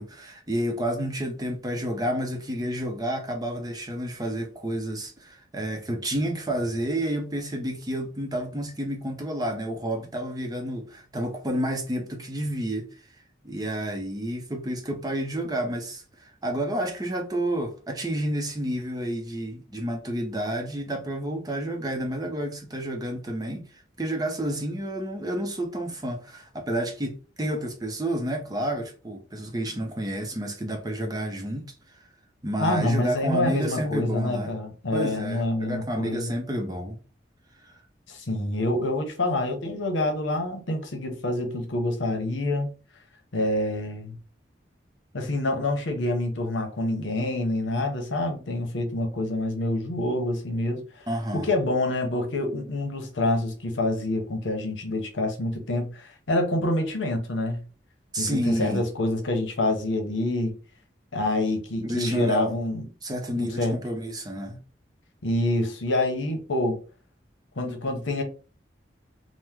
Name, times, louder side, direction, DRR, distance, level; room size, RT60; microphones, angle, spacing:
voice 1, 0.0-12.9 13.4-32.0 32.4-34.5 34.9-37.0 37.6-37.8 51.1-51.5 58.1-58.8 61.8-62.5 63.0-64.6, right 1 dB, 20° right, 0.6 m, -30 dB
voice 2, 32.6-36.3 38.1-42.7 43.3-44.2 45.1-51.1 51.3-57.6 58.2-60.5 61.1-62.9 63.3-63.8 65.2-66.8 67.6-68.2, left 1 dB, 85° left, 0.8 m, -27 dB
3.0 x 2.0 x 3.5 m
head